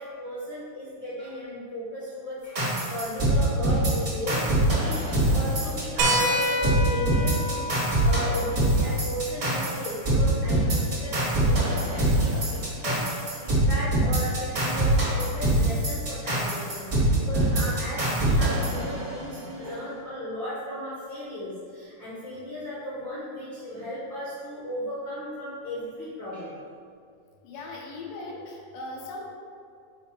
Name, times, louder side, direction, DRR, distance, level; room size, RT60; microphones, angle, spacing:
voice 1, 0.0-26.6 27.5-27.6, equal, 70° left, -9 dB, 1.1 m, -36 dB
sound 1, 2.6-19.4, right 1 dB, 55° right, 0.8 m, -24 dB
sound 2, 6.0-11.1 12.6-12.7 14.4-14.5, equal, 80° right, 1.8 m, -30 dB
voice 2, 27.4-29.3, left 2 dB, 85° left, -1 dB, 2.5 m, -38 dB
5.7 x 4.5 x 4.1 m, 2.3 s
omnidirectional pair, 3.8 m